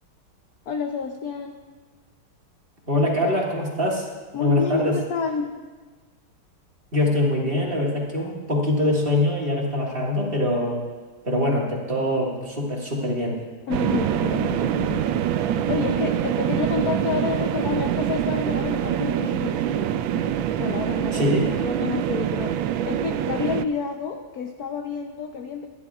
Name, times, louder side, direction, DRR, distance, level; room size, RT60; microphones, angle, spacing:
voice 1, 0.7-1.6 4.3-5.5 13.7-15.2 15.7-19.9 20.6-22.6 22.8-25.7, left 6 dB, 65° left, 4 dB, 0.9 m, -29 dB
voice 2, 2.9-4.1 4.4-5.0 6.9-10.8 11.2-13.4 21.1-21.5, left 1 dB, 25° right, -3 dB, 1.9 m, -23 dB
sound 1, 13.7-23.7, right 10 dB, 75° right, 1.2 m, -25 dB
24.0 x 11.0 x 2.4 m, 1.4 s
omnidirectional pair, 2.3 m